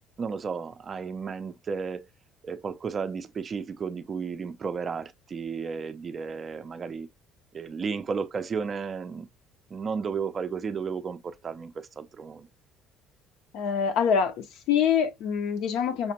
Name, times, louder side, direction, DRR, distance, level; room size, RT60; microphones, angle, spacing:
voice 1, 0.2-2.1 2.4-7.1 7.5-9.3 9.7-12.5, right 5 dB, 30° right, 0.4 m, -33 dB
voice 2, 13.5-16.1, left 7 dB, 70° left, 0.7 m, -25 dB
5.6 x 2.1 x 2.9 m
cardioid pair, 150°, 0 cm